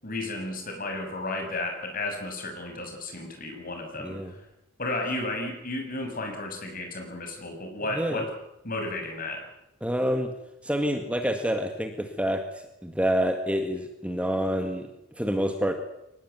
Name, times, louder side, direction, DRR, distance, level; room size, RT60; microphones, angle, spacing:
voice 1, 0.0-4.2 4.8-8.3 8.6-9.5, left 2 dB, 40° left, 4 dB, 6.7 m, -33 dB
voice 2, 4.0-4.3 7.9-8.3 9.8-10.3 10.6-15.7, equal, 5° right, 5 dB, 1.9 m, -28 dB
23.5 x 19.0 x 9.3 m, 0.86 s
head